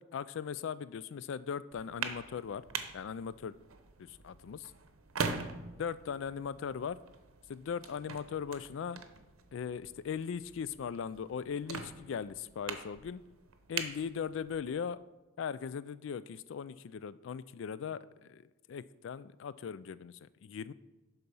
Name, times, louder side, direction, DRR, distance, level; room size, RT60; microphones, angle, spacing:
voice 1, 0.0-2.6 2.9-3.5 4.0-4.7 5.8-7.0 7.5-9.0 9.5-13.2 13.7-15.0 15.4-18.0 18.3-18.4 18.7-20.7, left 7 dB, 60° left, 17 dB, 0.3 m, -39 dB
sound 1, 1.7-14.8, right 5 dB, 75° right, 0.8 m, -43 dB
11.0 x 4.1 x 5.5 m, 1.2 s
head